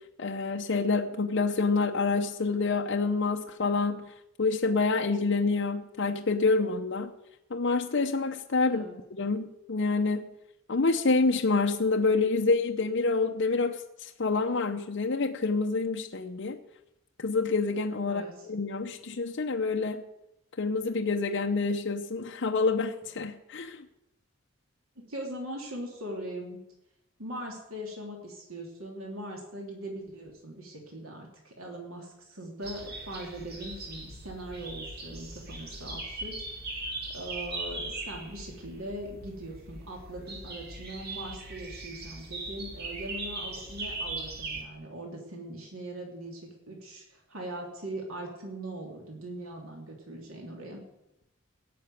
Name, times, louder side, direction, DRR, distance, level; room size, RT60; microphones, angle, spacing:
voice 1, 0.2-4.1 4.4-7.1 7.5-8.8 9.1-10.2 10.7-16.6 17.2-20.0 20.6-23.8, left 3 dB, 60° left, 3 dB, 0.7 m, -27 dB
voice 2, 18.1-18.5 25.0-26.6 27.2-50.8, right 1 dB, 85° right, 0 dB, 3.0 m, -41 dB
sound 1, 32.6-44.6, right 2 dB, 50° right, 2.8 m, -39 dB
17.0 x 6.8 x 9.2 m, 0.89 s
head